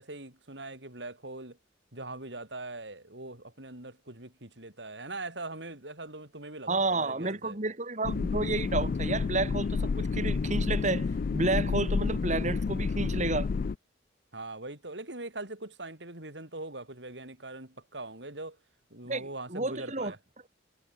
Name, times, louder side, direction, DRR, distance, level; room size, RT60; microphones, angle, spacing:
voice 1, 0.0-1.6 1.9-7.6 14.3-18.6 18.9-20.2, right 2 dB, 70° right, 5.2 m, -42 dB
voice 2, 6.7-13.5 19.0-20.1, right 2 dB, 40° right, 2.7 m, -31 dB
sound 1, 8.0-13.7, left 4 dB, 50° left, 0.4 m, -30 dB
head